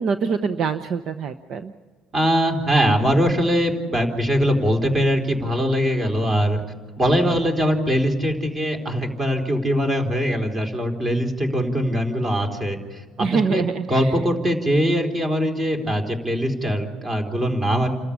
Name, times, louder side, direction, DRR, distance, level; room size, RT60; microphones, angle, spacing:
voice 1, 0.0-1.7 13.2-14.1, right 5 dB, 55° right, 9 dB, 0.9 m, -24 dB
voice 2, 2.1-6.6 7.0-13.0 13.3-13.6 13.9-17.9, equal, 25° right, 4 dB, 4.0 m, -22 dB
29.5 x 13.5 x 8.7 m, 1.4 s
cardioid pair, 120°, 0 cm